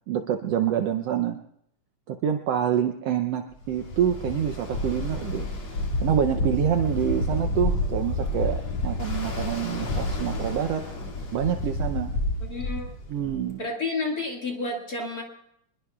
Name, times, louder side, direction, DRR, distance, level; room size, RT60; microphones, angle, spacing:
voice 1, 0.1-1.4 2.1-10.8 11.3-12.1 13.1-13.6, right 9 dB, 90° right, 7 dB, 1.4 m, -27 dB
Ocean, 3.6-13.5, left 1 dB, 55° left, 3.3 m, -29 dB
voice 2, 12.4-12.9 13.6-15.2, left 3 dB, 35° left, 0 dB, 1.9 m, -30 dB
25.5 x 21.0 x 2.3 m, 0.75 s
omnidirectional pair, 3.7 m